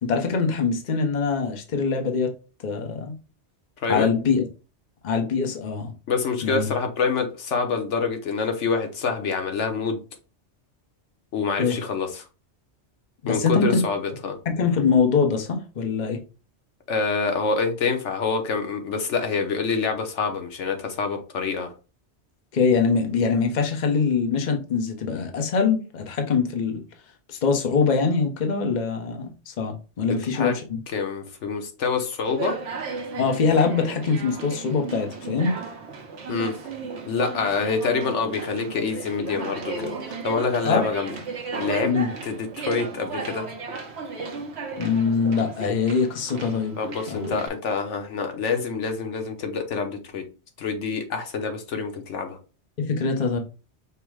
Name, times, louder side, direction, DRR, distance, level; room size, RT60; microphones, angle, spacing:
voice 1, 0.0-2.3 2.6-3.2 3.9-4.4 5.0-5.9 6.4-6.7 11.6-11.8 13.2-13.8 14.5-16.2 22.5-26.8 27.3-30.6 33.2-35.5 40.6-40.8 41.9-42.1 44.8-46.8 47.1-47.4 52.8-53.4, left 5 dB, 45° left, 3 dB, 0.9 m, -23 dB
voice 2, 3.8-4.1 6.1-10.0 11.3-12.3 13.3-14.4 16.9-21.7 30.3-30.5 30.9-32.6 36.3-36.5 37.1-41.1 41.6-41.9 42.2-43.5 46.8-50.2 50.6-52.4, left 5 dB, 80° left, 5 dB, 1.2 m, -26 dB
Conversation, 32.3-47.5, right 4 dB, 70° right, 1.0 m, -35 dB
5.6 x 2.1 x 4.6 m, 0.33 s
omnidirectional pair, 1.2 m